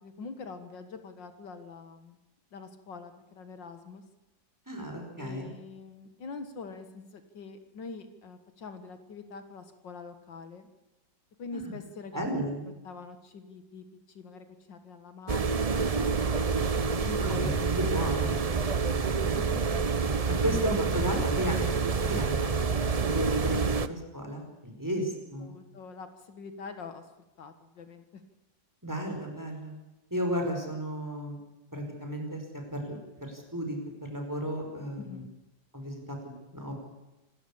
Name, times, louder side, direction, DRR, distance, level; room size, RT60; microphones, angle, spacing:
voice 1, 0.0-2.2 2.5-4.0 5.2-10.7 11.4-12.3 12.8-16.4 17.0-17.6 18.2-18.6 19.3-19.9 23.5-23.7 25.4-27.1 27.4-28.2 35.1-35.3, left 4 dB, 70° left, 9 dB, 2.2 m, -44 dB
voice 2, 4.7-5.5 11.5-11.7 12.1-12.6 17.2-18.4 19.2-19.5 20.3-22.8 23.1-25.5 28.8-29.8 30.1-31.4 31.7-35.2 35.7-36.8, equal, 10° right, 2 dB, 5.1 m, -34 dB
sound 1, 15.3-23.9, right 5 dB, 70° right, 0.3 m, -27 dB
27.0 x 13.5 x 8.6 m, 1.0 s
omnidirectional pair, 2.1 m